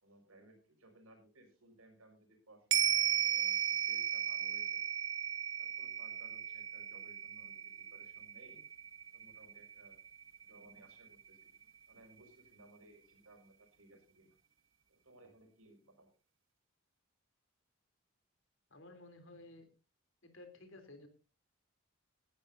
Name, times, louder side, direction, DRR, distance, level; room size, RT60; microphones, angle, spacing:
voice 1, 0.0-4.8 5.6-8.6 9.1-10.0 10.4-11.5 11.9-14.4 14.9-16.1, right 1 dB, 90° right, 4 dB, 5.6 m, -62 dB
sound 1, 2.7-11.3 11.6-11.7, right 9 dB, 65° right, 0.8 m, -36 dB
voice 2, 18.7-19.7 20.2-21.1, left 2 dB, 65° left, 7 dB, 3.3 m, -54 dB
19.0 x 12.0 x 2.7 m, 0.32 s
head